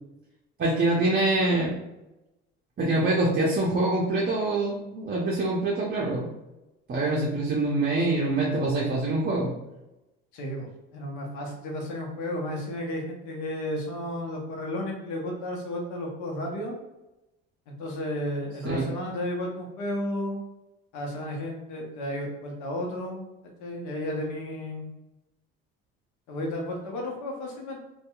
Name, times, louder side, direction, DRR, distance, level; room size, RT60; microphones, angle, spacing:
voice 1, 0.6-1.8 2.8-6.3 6.9-9.5 18.6-18.8, right 2 dB, 30° right, -4 dB, 0.6 m, -25 dB
voice 2, 10.3-16.7 17.7-20.4 20.9-23.3 23.6-24.9 26.3-27.8, left 1 dB, 70° left, 0 dB, 0.8 m, -33 dB
2.6 x 2.3 x 2.3 m, 0.98 s
supercardioid pair, 75°, 30 cm